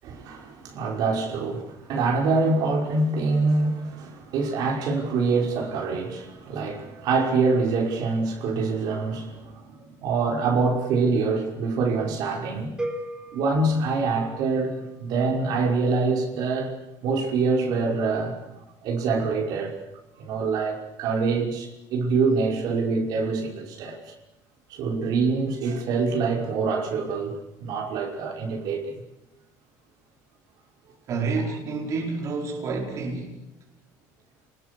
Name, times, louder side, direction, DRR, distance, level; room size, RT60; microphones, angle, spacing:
voice 1, 0.0-12.8 13.3-16.7 17.0-18.4 18.8-19.8 20.2-24.0 24.7-28.9, right 4 dB, 60° right, 5.6 m, -25 dB
sound 1, 12.8-14.9, right 1 dB, 10° right, 4.4 m, -36 dB
voice 2, 31.1-33.4, right 4 dB, 45° right, 4.9 m, -29 dB
29.5 x 21.0 x 7.0 m
cardioid pair, 140°, 7 cm